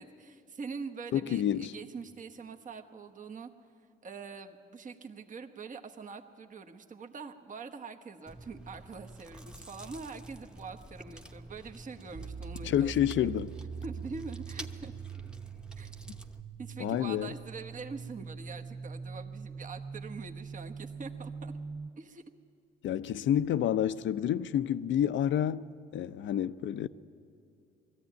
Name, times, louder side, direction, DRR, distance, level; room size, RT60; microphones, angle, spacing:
voice 1, 0.0-3.5 4.0-13.3 13.8-14.9 15.8-15.9 16.6-21.5 22.0-22.2, right 4 dB, 40° right, 1.2 m, -44 dB
voice 2, 1.1-1.7 12.6-13.5 16.8-17.3 22.8-26.9, left 10 dB, 70° left, 0.6 m, -29 dB
Chewing mastication, 8.3-16.4, right 1 dB, 5° right, 1.0 m, -49 dB
sound 1, 12.1-21.9, right 6 dB, 25° right, 0.5 m, -43 dB
20.0 x 14.0 x 9.3 m
cardioid pair, 90°, 20 cm